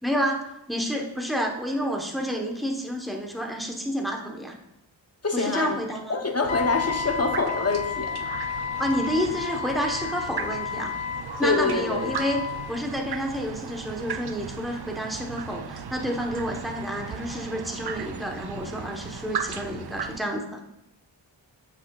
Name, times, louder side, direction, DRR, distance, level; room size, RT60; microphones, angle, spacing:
voice 1, 0.0-4.6 5.3-6.2 8.8-10.9 11.4-12.4 12.7-20.6, equal, ahead, 1 dB, 1.0 m, -29 dB
voice 2, 5.2-5.8 6.1-8.3 11.4-12.1, left 3 dB, 35° left, 5 dB, 0.8 m, -25 dB
sound 1, 6.4-20.2, right 7 dB, 55° right, 0.5 m, -37 dB
Wind instrument woodwind instrument, 6.5-12.7, left 9 dB, 85° left, 0.7 m, -32 dB
8.1 x 5.9 x 2.4 m, 0.85 s
wide cardioid pair, 50°, 47 cm